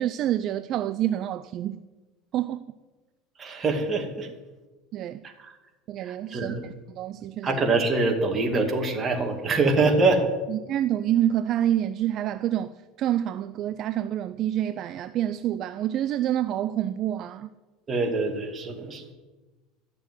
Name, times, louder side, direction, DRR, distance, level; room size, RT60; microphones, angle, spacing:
voice 1, 0.0-1.8 2.3-2.6 4.9-5.2 5.9-6.6 7.0-7.6 10.5-12.7 13.0-17.5, right 11 dB, 40° right, 0.4 m, -27 dB
voice 2, 3.4-4.3 5.4-5.5 6.1-6.6 7.4-10.2 17.9-19.1, right 3 dB, 20° right, 2.1 m, -24 dB
13.0 x 6.8 x 9.5 m
cardioid pair, 150°, 0 cm